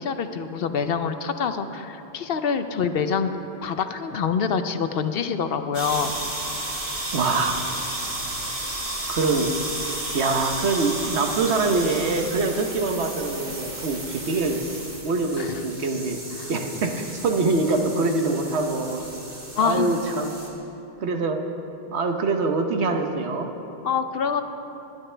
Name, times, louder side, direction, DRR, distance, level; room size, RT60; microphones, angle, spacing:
voice 1, 0.0-3.3 3.6-6.1 15.4-15.6 16.4-16.5 19.6-20.0 23.7-24.4, left 6 dB, 65° left, 9 dB, 0.8 m, -26 dB
sound 1, 5.7-20.5, right 1 dB, 55° right, 2.3 m, -33 dB
voice 2, 7.1-7.5 9.1-9.6 10.1-14.7 15.0-16.2 16.5-19.0 19.6-20.4 21.0-21.4 21.9-23.5, right 3 dB, 80° right, 4 dB, 1.2 m, -24 dB
21.5 x 10.5 x 3.4 m, 2.9 s
omnidirectional pair, 1.1 m